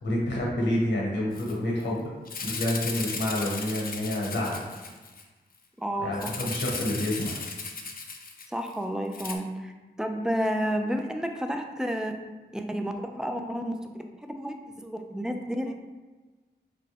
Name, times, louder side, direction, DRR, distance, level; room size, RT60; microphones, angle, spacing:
voice 1, 0.0-2.1 2.4-4.6 6.0-7.4, left 1 dB, 90° left, -3 dB, 1.1 m, -28 dB
Rattle (instrument), 1.3-1.5 1.8-1.9 2.3-5.2 6.2-8.7 9.1-9.3, left 4 dB, 55° left, 0.5 m, -36 dB
voice 2, 5.8-6.3 8.5-9.7 10.0-12.1 12.5-15.7, equal, 5° right, 4 dB, 0.4 m, -31 dB
3.6 x 2.2 x 3.3 m, 1.3 s
cardioid pair, 65°, 18 cm